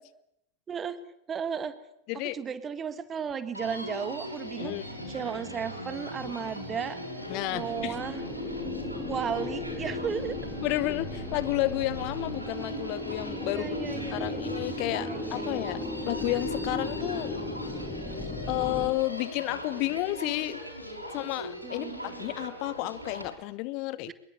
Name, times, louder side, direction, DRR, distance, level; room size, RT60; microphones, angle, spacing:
voice 1, 0.7-1.0 1.3-1.8 2.2-7.0 7.5-8.2 9.1-10.4 13.6-14.4 14.9-15.6 16.0-16.1 21.6-22.3 24.1-24.2, right 7 dB, 20° right, 13 dB, 2.0 m, -35 dB
Human voice, 3.5-23.4, equal, 90° right, 5.4 m, -40 dB
voice 2, 4.6-4.9 7.3-7.9 10.6-17.4 18.5-20.6 21.1-24.1, left 18 dB, 45° left, 18 dB, 1.0 m, -31 dB
sound 1, 4.6-18.9, left 2 dB, 15° left, 7.9 m, -37 dB
24.5 x 22.0 x 8.2 m, 0.77 s
figure-of-eight pair, 90°, 0 cm